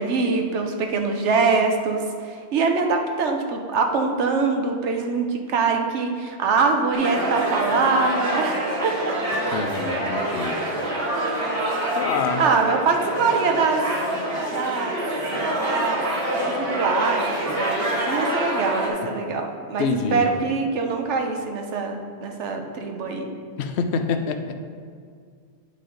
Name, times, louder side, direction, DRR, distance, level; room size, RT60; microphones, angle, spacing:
voice 1, 0.0-9.2 10.3-10.7 11.3-11.4 12.4-13.8 14.5-15.0 15.7-23.3, right 4 dB, 80° right, 3 dB, 1.0 m, -24 dB
sound 1, 6.9-18.9, right 1 dB, 55° right, 1.6 m, -26 dB
voice 2, 9.5-10.6 11.9-12.4 19.8-20.3 23.6-24.6, left 5 dB, 70° left, 7 dB, 0.9 m, -26 dB
10.0 x 5.1 x 3.8 m, 2.1 s
omnidirectional pair, 1.2 m